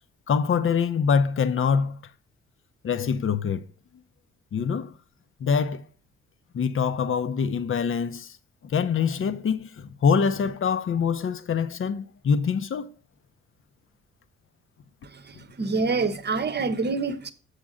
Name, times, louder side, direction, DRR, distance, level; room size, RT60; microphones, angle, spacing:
voice 1, 0.3-2.0 2.8-3.7 4.5-4.9 5.4-5.9 6.5-8.4 8.6-12.9 15.3-15.4, left 6 dB, 40° left, 0.8 m, -24 dB
voice 2, 15.0-17.3, right 4 dB, 30° right, 1.0 m, -27 dB
7.2 x 6.5 x 3.7 m
hypercardioid pair, 45°, 32 cm